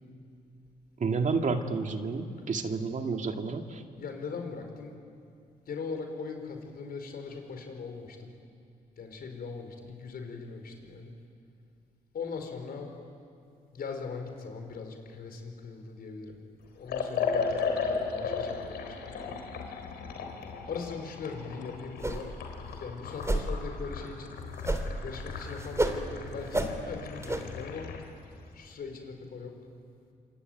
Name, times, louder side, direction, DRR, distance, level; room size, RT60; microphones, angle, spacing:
voice 1, 1.0-3.8, right 4 dB, 50° right, 5 dB, 2.3 m, -30 dB
voice 2, 3.9-5.0 5.7-8.3 9.0-11.1 12.1-12.9 13.7-16.4 16.7-19.1 20.7-22.3 22.8-24.3 25.0-27.9 28.5-29.5, left 5 dB, 65° left, 5 dB, 5.0 m, -40 dB
Liquid, 16.9-28.1, left 5 dB, 85° left, 3.7 m, -36 dB
sound 1, 22.0-22.4 22.7-22.8 23.2-23.5 24.6-25.1 25.3-26.0 26.5-26.7 27.2-27.4, right 2 dB, 15° right, 3.5 m, -29 dB
26.5 x 24.0 x 9.4 m, 2.5 s
supercardioid pair, 65°, 17 cm